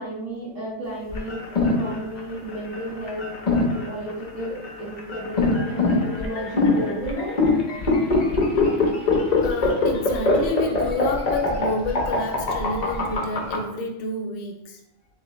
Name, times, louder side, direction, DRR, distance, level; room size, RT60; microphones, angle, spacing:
voice 1, 0.0-3.3 3.9-7.4, equal, 75° right, -8 dB, 1.6 m, -33 dB
sound 1, 1.1-13.6, left 3 dB, 45° left, 0.6 m, -22 dB
voice 2, 9.4-14.8, left 3 dB, 85° left, 2 dB, 1.0 m, -29 dB
3.4 x 3.2 x 3.0 m, 0.82 s
omnidirectional pair, 1.3 m